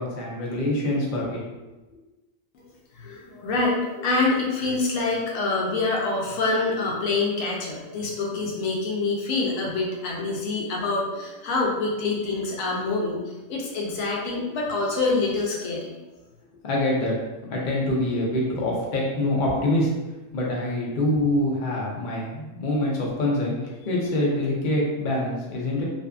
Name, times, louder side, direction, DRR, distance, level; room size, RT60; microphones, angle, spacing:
voice 1, 0.0-1.4 16.6-17.2 17.5-19.9 20.3-25.8, left 1 dB, 55° left, -3 dB, 0.5 m, -25 dB
voice 2, 2.9-13.2 13.5-15.9, left 3 dB, 75° left, -2 dB, 1.0 m, -26 dB
2.6 x 2.4 x 2.3 m, 1.1 s
omnidirectional pair, 1.4 m